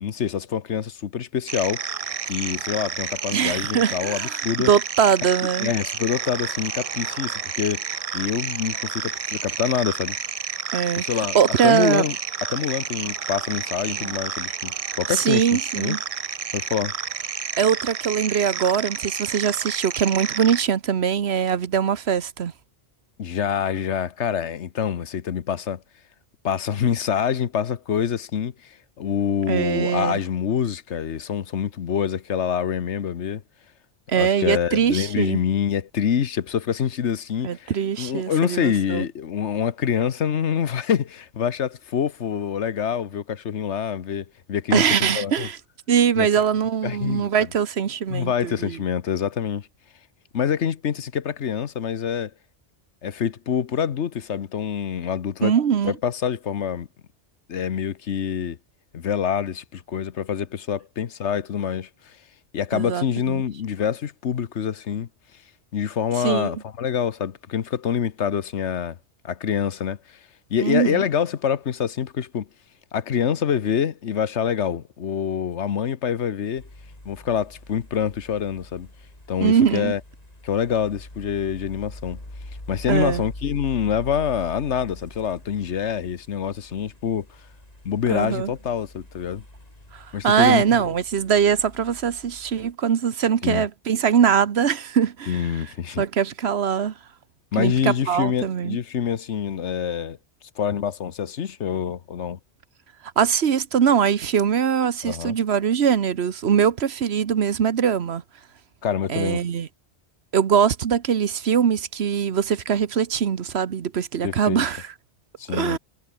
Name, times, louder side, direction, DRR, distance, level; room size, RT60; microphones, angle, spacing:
voice 1, 0.0-1.8 2.3-4.7 5.2-5.3 5.6-7.9 8.1-10.2 11.0-11.4 11.6-12.2 12.4-16.0 16.5-16.9 23.2-25.8 26.4-28.5 29.0-33.4 34.1-37.7 38.0-45.5 46.2-46.3 46.8-47.3 48.1-49.7 50.3-52.3 53.0-55.5 55.8-56.9 57.5-58.6 58.9-61.9 62.5-65.1 65.7-69.0 69.2-70.0 70.5-72.5 72.9-76.6 77.0-78.9 79.3-80.0 80.4-82.2 82.7-87.2 87.8-89.4 90.1-90.8 93.4-93.6 95.3-96.0 97.5-100.2 100.6-102.4 105.0-105.4 108.8-109.4 114.2-114.6 115.4-115.8, left 8 dB, 80° left, 1.3 m, -26 dB
sound 1, 1.5-20.6, right 6 dB, 35° right, 0.7 m, -30 dB
voice 2, 3.3-5.7 10.7-12.0 14.0-14.1 15.1-16.0 17.6-22.5 29.5-30.2 34.1-35.4 37.4-39.0 44.7-45.6 45.9-48.8 55.4-55.9 62.7-63.4 66.2-66.5 70.6-71.0 79.4-79.9 82.9-83.2 88.1-88.5 89.9-95.4 96.0-96.9 97.6-98.8 103.2-108.2 109.1-109.7 110.3-114.9 115.5-115.8, right 8 dB, 65° right, 1.2 m, -22 dB
sound 2, 76.6-92.7, left 1 dB, 35° left, 5.0 m, -43 dB
omnidirectional pair, 1.2 m